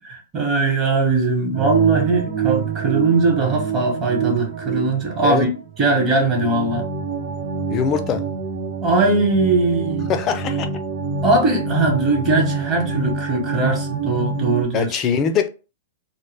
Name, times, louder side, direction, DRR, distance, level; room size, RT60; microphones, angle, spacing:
voice 1, 0.0-5.5 5.8-6.8 8.8-10.1 11.2-14.9, right 3 dB, 25° right, 0.9 m, -20 dB
sound 1, 1.5-14.6, right 4 dB, 60° right, 0.7 m, -27 dB
voice 2, 7.7-8.2 10.1-10.7 14.7-15.5, left 7 dB, 30° left, 0.4 m, -22 dB
2.1 x 2.0 x 3.2 m
hypercardioid pair, 140°, 0 cm